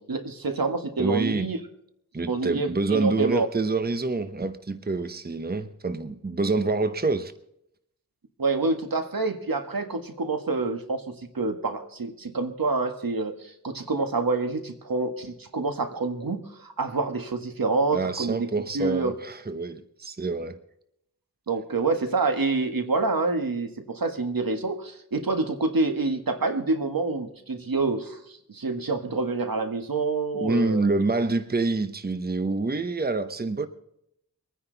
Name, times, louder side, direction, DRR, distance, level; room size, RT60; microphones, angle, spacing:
voice 1, 0.0-1.6 2.3-3.5 8.4-19.1 21.5-30.9, right 3 dB, 80° right, 1.8 m, -27 dB
voice 2, 1.0-1.5 2.1-7.3 17.9-20.6 30.3-33.7, right 3 dB, 25° right, 0.9 m, -27 dB
24.5 x 9.9 x 4.0 m
wide cardioid pair, 65°, 35 cm